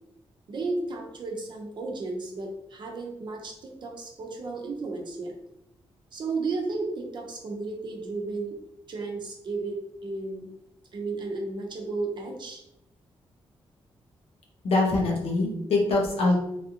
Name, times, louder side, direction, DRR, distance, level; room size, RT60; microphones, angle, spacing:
voice 1, 0.5-5.3 6.1-8.6 8.9-9.8 10.0-10.5 10.9-12.6, right 3 dB, 50° right, 1 dB, 0.7 m, -33 dB
voice 2, 14.6-16.4, left 2 dB, 75° left, -1 dB, 0.9 m, -23 dB
3.3 x 2.4 x 2.8 m, 0.81 s
wide cardioid pair, 135°, 10 cm